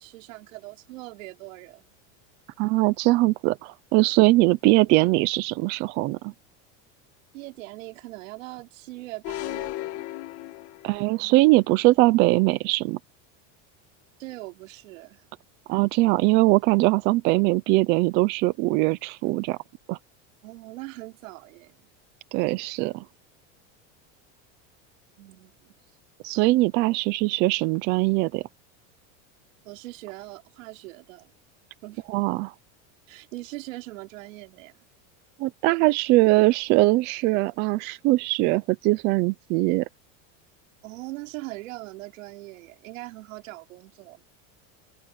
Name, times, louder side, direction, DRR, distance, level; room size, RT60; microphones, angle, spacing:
voice 1, 0.0-1.9 7.3-10.1 14.2-15.3 20.4-21.7 25.2-25.7 29.6-31.3 31.8-32.0 33.1-34.7 40.8-44.2, right 20 dB, 85° right, 4.8 m, -41 dB
voice 2, 2.6-6.3 10.8-13.0 15.7-19.6 19.9-20.0 22.3-23.0 26.2-28.4 32.1-32.5 35.4-39.9, right 20 dB, 30° right, 0.4 m, -21 dB
sound 1, 9.2-11.2, left 16 dB, 40° left, 2.4 m, -35 dB
cardioid pair, 180°, 38 cm